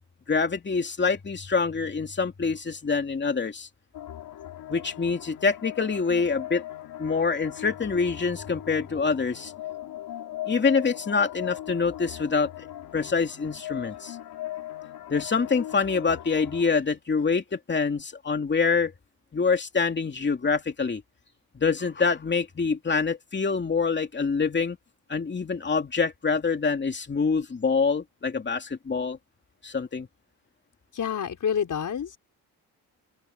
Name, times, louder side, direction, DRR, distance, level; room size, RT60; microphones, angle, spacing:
voice 1, 0.3-3.7 4.7-6.6 7.0-9.5 10.5-12.5 12.9-14.2 15.1-18.9 19.3-21.0 21.5-24.8 25.1-29.2 29.6-30.1, left 5 dB, 30° left, 2.7 m, -25 dB
sound 1, 3.9-16.7, left 13 dB, 75° left, 2.6 m, -39 dB
voice 2, 30.9-32.2, left 8 dB, 50° left, 4.7 m, -28 dB
open air
cardioid pair, 115°, 38 cm